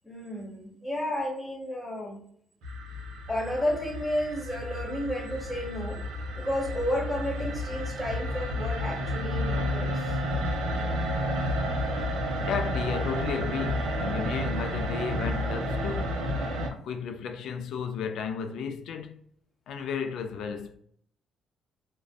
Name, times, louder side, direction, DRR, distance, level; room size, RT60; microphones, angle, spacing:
voice 1, 0.0-2.2 3.3-6.0 6.3-10.2, left 1 dB, 15° left, 1.1 m, -32 dB
sound 1, 2.6-16.7, equal, 80° right, 0.6 m, -31 dB
voice 2, 12.2-16.2 16.7-19.1 19.7-20.8, left 6 dB, 75° left, 0.4 m, -33 dB
2.5 x 2.2 x 2.2 m
supercardioid pair, 55°, 0 cm